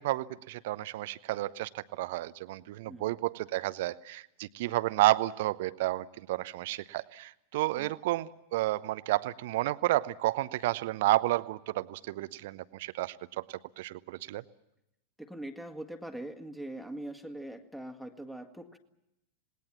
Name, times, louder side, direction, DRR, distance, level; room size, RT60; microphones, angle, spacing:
voice 1, 0.0-14.4, right 17 dB, 50° right, 16 dB, 0.8 m, -31 dB
voice 2, 2.9-3.2 15.2-18.8, right 1 dB, ahead, 6 dB, 2.0 m, -42 dB
27.0 x 20.0 x 7.3 m, 0.86 s
figure-of-eight pair, 90°, 0 cm